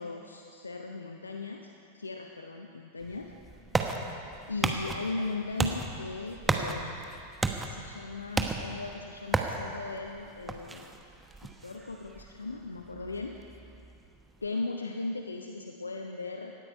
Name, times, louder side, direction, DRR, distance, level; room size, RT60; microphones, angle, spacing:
voice 1, 0.0-3.3 4.5-7.1 7.6-10.9 11.4-13.4 14.4-16.6, left 3 dB, 75° left, 3 dB, 0.8 m, -37 dB
sound 1, 3.0-14.5, right 3 dB, 10° right, 1.1 m, -35 dB
18.0 x 13.0 x 5.4 m, 2.6 s
figure-of-eight pair, 90°, 0 cm